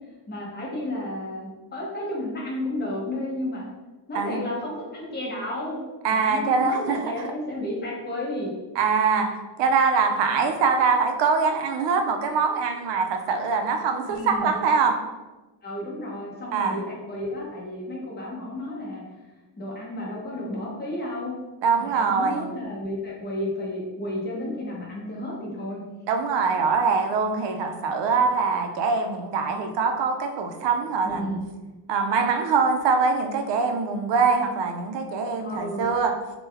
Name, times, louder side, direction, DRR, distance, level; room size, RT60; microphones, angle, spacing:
voice 1, 0.3-3.7 4.1-5.8 6.1-8.5 10.2-10.5 14.1-14.5 15.6-19.0 19.6-21.3 21.8-25.8 31.0-31.5 35.4-35.9, left 1 dB, 20° left, -4 dB, 0.8 m, -32 dB
voice 2, 6.0-7.0 8.8-14.9 16.5-16.8 21.6-22.5 26.1-31.3 31.9-36.1, right 5 dB, 65° right, 5 dB, 0.5 m, -23 dB
3.3 x 2.2 x 3.3 m, 1.2 s
cardioid pair, 160°, 46 cm